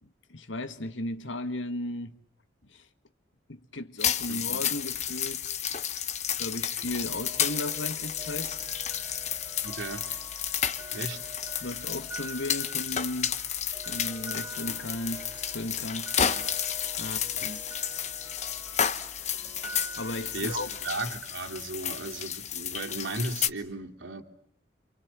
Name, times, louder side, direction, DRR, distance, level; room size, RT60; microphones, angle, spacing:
voice 1, 0.0-2.2 2.7-2.9 3.5-5.8 6.4-8.5 11.6-13.4 13.9-15.3 15.5-16.1 17.0-17.6 20.0-20.7, left 1 dB, 80° left, 1.7 m, -36 dB
sound 1, 4.0-23.5, left 9 dB, 35° left, 1.1 m, -32 dB
voice 2, 4.3-4.6 9.6-10.0 10.9-11.2 16.2-16.5 17.4-17.5 20.3-24.2, right 2 dB, 80° right, 3.0 m, -36 dB
sound 2, 6.9-20.9, right 2 dB, 10° right, 1.2 m, -46 dB
28.0 x 27.5 x 7.5 m
head